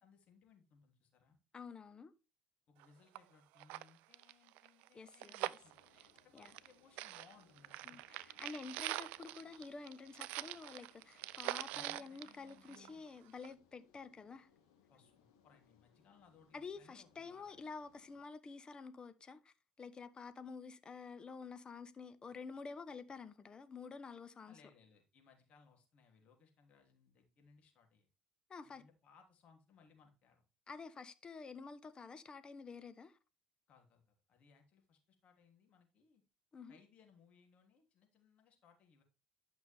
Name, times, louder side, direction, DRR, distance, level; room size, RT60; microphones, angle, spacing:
voice 1, 0.0-1.4 2.7-5.8 6.2-8.0 11.7-13.0 14.9-17.6 24.5-28.1 28.6-30.4 33.7-36.2 36.7-39.0, left 6 dB, 60° left, 3.0 m, -66 dB
voice 2, 1.5-2.1 4.9-5.3 6.3-6.5 7.8-14.5 16.5-24.5 28.5-28.8 30.7-33.2 36.5-36.8, left 4 dB, 35° left, 1.1 m, -50 dB
sound 1, 2.8-2.9 3.1-3.2 3.5-6.7 7.0-13.1 13.4-13.5, right 17 dB, 75° right, 0.4 m, -44 dB
sound 2, 5.6-18.2, left 7 dB, 85° left, 2.6 m, -72 dB
11.5 x 6.0 x 3.5 m
hypercardioid pair, 65°, 3 cm